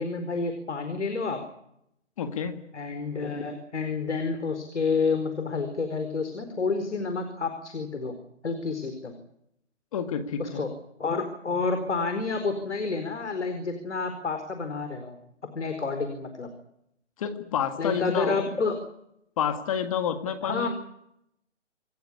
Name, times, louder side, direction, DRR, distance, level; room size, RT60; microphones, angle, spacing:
voice 1, 0.0-1.4 2.7-8.1 8.4-9.1 10.4-10.7 11.0-15.2 15.5-16.5 17.8-18.8 20.4-20.7, left 4 dB, 70° left, 7 dB, 4.6 m, -29 dB
voice 2, 2.2-2.7 9.9-10.6 17.2-18.4 19.4-20.7, left 8 dB, 30° left, 8 dB, 1.9 m, -29 dB
27.5 x 15.0 x 9.8 m, 0.77 s
hypercardioid pair, 155°, 36 cm